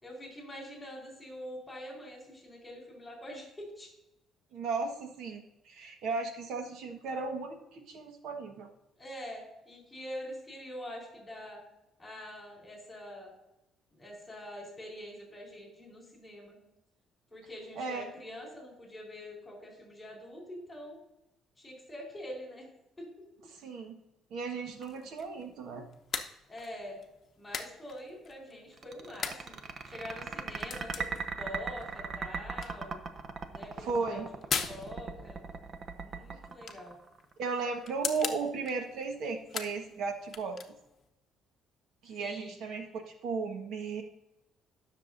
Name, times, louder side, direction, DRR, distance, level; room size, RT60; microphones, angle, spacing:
voice 1, 0.0-3.9 9.0-11.6 12.0-13.3 13.9-16.6 17.3-21.0 21.6-22.7 23.0-23.1 26.5-27.0 27.4-29.6 29.9-33.0 33.5-34.2 34.7-35.5 36.0-37.0 42.2-42.6, left 1 dB, 10° left, 0 dB, 4.0 m, -45 dB
voice 2, 4.5-8.7 17.7-18.1 23.5-24.0 24.3-25.8 33.8-34.3 37.4-40.6 42.0-44.0, right 4 dB, 70° right, 4 dB, 1.3 m, -35 dB
sound 1, 24.7-41.1, left 6 dB, 35° left, 0.9 m, -43 dB
sound 2, 28.8-37.4, right 5 dB, 40° right, 0.8 m, -38 dB
18.0 x 6.6 x 2.6 m, 0.88 s
cardioid pair, 135°, 0 cm